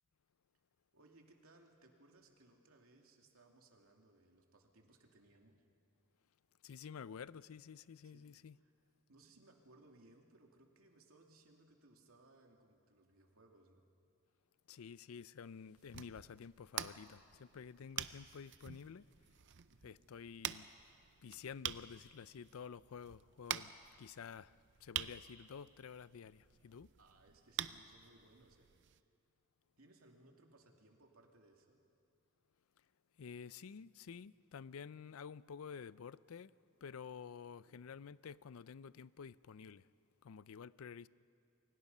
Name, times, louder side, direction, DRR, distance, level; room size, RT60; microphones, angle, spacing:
voice 1, 0.9-5.6 8.0-8.3 8.6-8.7 9.1-13.8 19.7-19.9 27.0-28.7 29.8-31.8 37.6-37.8, right 2 dB, 85° right, 2.6 m, -65 dB
voice 2, 6.6-8.6 14.7-19.0 19.8-20.7 21.2-23.7 24.0-24.5 24.8-26.9 33.2-36.5 36.8-39.9 40.2-41.1, left 6 dB, 85° left, 0.5 m, -51 dB
sound 1, 15.8-29.0, right 10 dB, 55° right, 0.6 m, -47 dB
29.0 x 24.0 x 5.5 m
head